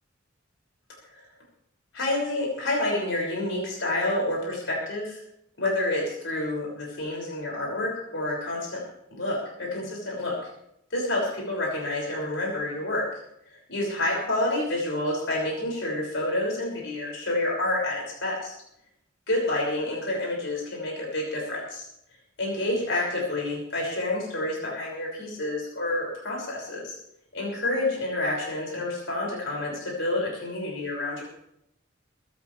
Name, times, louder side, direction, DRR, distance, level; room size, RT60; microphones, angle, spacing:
voice 1, 1.9-5.2 5.6-8.8 9.1-10.4 10.9-13.0 13.7-18.5 19.3-21.8 22.4-26.9 27.3-31.2, left 1 dB, 65° left, -2 dB, 6.3 m, -28 dB
23.5 x 14.0 x 3.4 m, 0.76 s
head